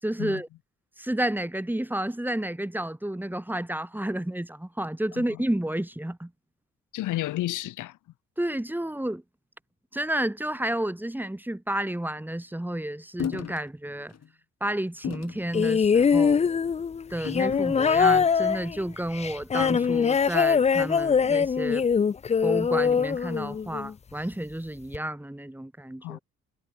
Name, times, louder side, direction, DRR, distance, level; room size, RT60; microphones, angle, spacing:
voice 1, 0.0-0.5 1.0-6.3 8.4-9.2 9.9-14.1 14.6-16.4 17.1-21.9 22.4-26.2, right 1 dB, 5° right, 4.1 m, -31 dB
voice 2, 6.9-8.0 26.0-26.2, left 15 dB, 85° left, 2.3 m, -31 dB
sound 1, 13.2-13.6 14.1-14.3 15.0-15.4 16.2-16.5 17.2-18.2 19.6-20.1, left 9 dB, 60° left, 5.3 m, -35 dB
sound 2, 15.5-23.9 24.9-25.0, left 6 dB, 20° left, 0.4 m, -23 dB
cardioid pair, 90°, 30 cm